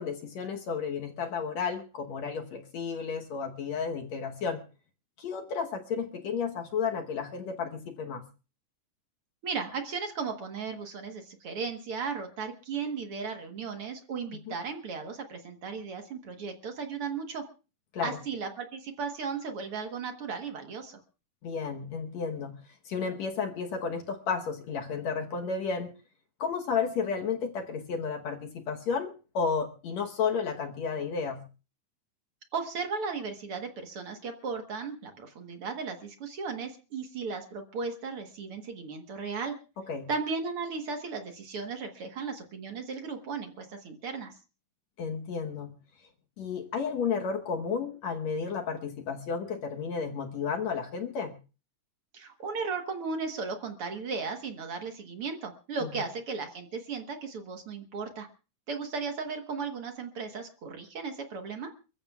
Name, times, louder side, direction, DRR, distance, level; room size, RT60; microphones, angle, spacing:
voice 1, 0.0-4.6 5.2-8.2 14.5-14.6 17.9-18.2 21.4-22.5 22.9-25.9 26.4-31.4 39.9-40.1 45.0-45.7 46.4-51.4, left 5 dB, 65° left, 4 dB, 2.1 m, -32 dB
voice 2, 9.4-17.4 18.0-21.0 32.5-39.6 40.1-44.3 52.1-58.3 58.7-61.7, right 5 dB, 55° right, 5 dB, 1.8 m, -36 dB
29.0 x 14.5 x 2.4 m, 0.34 s
omnidirectional pair, 3.7 m